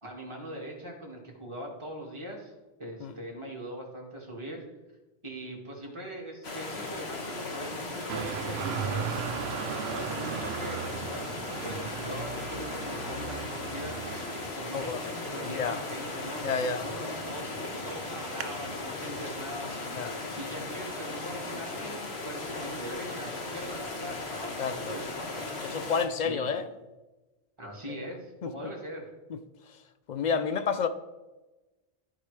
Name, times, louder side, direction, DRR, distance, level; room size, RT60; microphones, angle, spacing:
voice 1, 0.0-2.5 2.8-4.7 5.2-9.2 9.9-14.0 14.6-17.5 17.8-19.7 20.4-25.5 26.2-26.5 27.6-29.1, equal, 30° right, 2.0 m, -41 dB
sound 1, 6.4-26.0, left 3 dB, 85° left, 1.6 m, -37 dB
Traffic noise roadway noise, 8.1-19.9, right 8 dB, 90° right, 0.8 m, -39 dB
voice 2, 15.4-15.8 16.4-16.8 19.9-20.1 24.6-25.0 25.6-26.7 28.4-28.5 29.3-29.4 29.7-29.8 30.1-30.9, left 6 dB, 55° left, 0.6 m, -30 dB
14.0 x 4.8 x 3.3 m
omnidirectional pair, 1.0 m